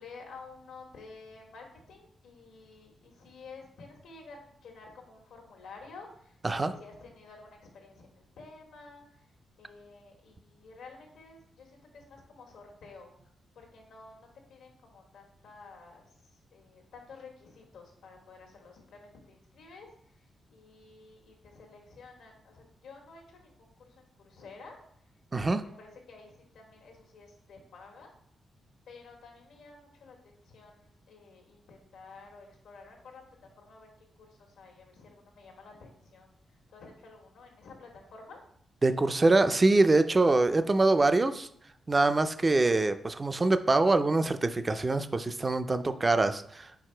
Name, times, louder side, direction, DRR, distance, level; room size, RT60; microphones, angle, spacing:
voice 1, 0.0-9.0 9.6-13.1 13.5-16.0 16.5-20.2 20.5-24.8 25.4-28.1 28.9-33.2 33.6-33.9 34.2-38.4, left 4 dB, 85° left, 1 dB, 1.4 m, -51 dB
voice 2, 25.3-25.6 38.8-41.5 41.9-46.8, right 2 dB, 25° right, 10 dB, 0.4 m, -24 dB
4.7 x 4.5 x 4.4 m, 0.66 s
cardioid pair, 115°, 0 cm